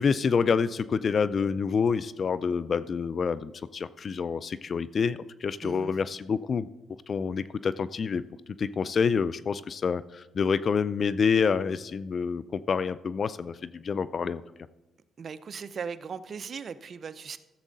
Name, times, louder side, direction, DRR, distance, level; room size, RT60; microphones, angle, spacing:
voice 1, 0.0-6.7 7.1-8.2 8.6-14.4, left 6 dB, 45° left, 16 dB, 0.3 m, -27 dB
voice 2, 5.6-5.9 15.2-17.4, right 6 dB, 50° right, 13 dB, 0.6 m, -38 dB
14.5 x 7.3 x 4.0 m, 1.0 s
cardioid pair, 90°, 0 cm